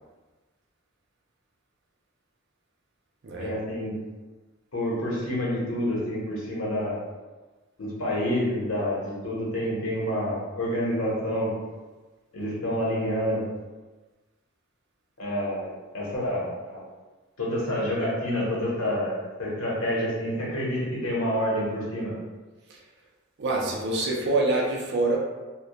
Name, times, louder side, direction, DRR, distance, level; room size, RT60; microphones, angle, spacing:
voice 1, 3.4-3.9 4.7-7.0 7.8-11.5 12.3-13.4 15.2-16.8 17.4-22.1, equal, 85° left, -5 dB, 0.9 m, -28 dB
voice 2, 23.4-25.2, right 2 dB, 55° right, -2 dB, 0.4 m, -25 dB
2.2 x 2.1 x 2.7 m, 1.3 s
head